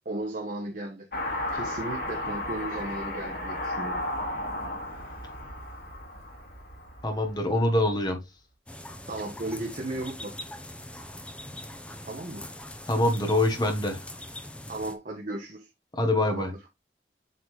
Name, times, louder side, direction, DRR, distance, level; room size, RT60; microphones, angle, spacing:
voice 1, 0.0-1.1 1.5-4.0 9.1-10.4 12.1-12.5 14.7-15.7 16.2-16.7, right 1 dB, 45° right, 1.1 m, -35 dB
Car passing by / Accelerating revving vroom, 1.1-7.7, left 1 dB, 55° left, 2.7 m, -34 dB
voice 2, 7.0-8.2 12.9-14.0 16.0-16.5, left 1 dB, 25° left, 1.4 m, -24 dB
sound 1, 8.7-14.9, left 1 dB, 5° left, 0.7 m, -42 dB
7.9 x 4.0 x 3.3 m
head